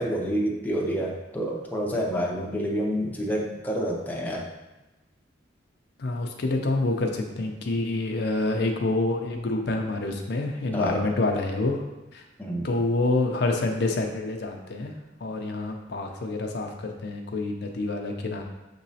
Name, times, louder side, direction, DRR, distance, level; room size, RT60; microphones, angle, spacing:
voice 1, 0.0-4.5 10.7-11.1 12.4-12.7, equal, 10° left, -2 dB, 0.5 m, -28 dB
voice 2, 6.0-11.8 12.1-12.2 12.6-15.0 15.2-18.4, left 2 dB, 60° left, 3 dB, 0.5 m, -27 dB
6.3 x 3.0 x 2.7 m, 1.0 s
head